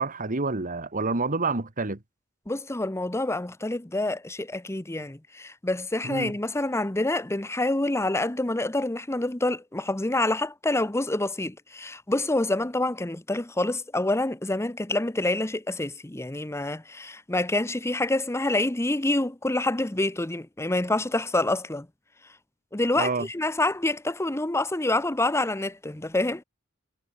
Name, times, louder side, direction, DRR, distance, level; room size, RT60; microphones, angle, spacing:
voice 1, 0.0-2.0 6.0-6.3 23.0-23.3, right 3 dB, 40° right, 1.8 m, -28 dB
voice 2, 2.5-21.9 22.7-26.4, left 2 dB, 15° left, 0.9 m, -27 dB
head